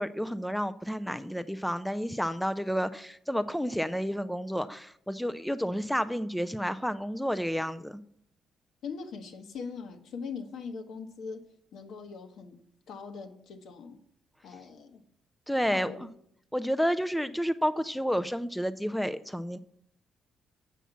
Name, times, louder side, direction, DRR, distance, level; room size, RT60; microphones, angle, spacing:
voice 1, 0.0-8.0 15.5-16.0 16.5-19.6, equal, ahead, 12 dB, 0.4 m, -30 dB
voice 2, 8.8-11.4 11.7-12.6 12.9-14.0 14.4-15.0 15.7-16.0, left 5 dB, 75° left, 5 dB, 1.2 m, -41 dB
7.3 x 5.8 x 7.0 m, 0.70 s
cardioid pair, 90°, 0 cm